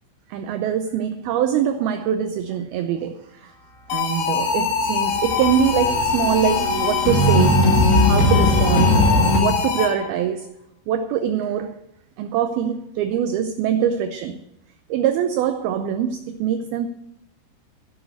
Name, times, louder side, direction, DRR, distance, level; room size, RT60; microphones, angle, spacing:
voice 1, 0.3-3.5 3.9-7.7 8.1-9.0 9.4-10.5 10.9-11.8 12.2-14.4 14.9-16.9, right 9 dB, 80° right, 2.2 m, -23 dB
sound 1, 3.9-10.2, left 5 dB, 75° left, 3.7 m, -23 dB
sound 2, 4.6-9.4, left 1 dB, 50° left, 0.9 m, -19 dB
14.0 x 6.7 x 7.9 m
omnidirectional pair, 5.2 m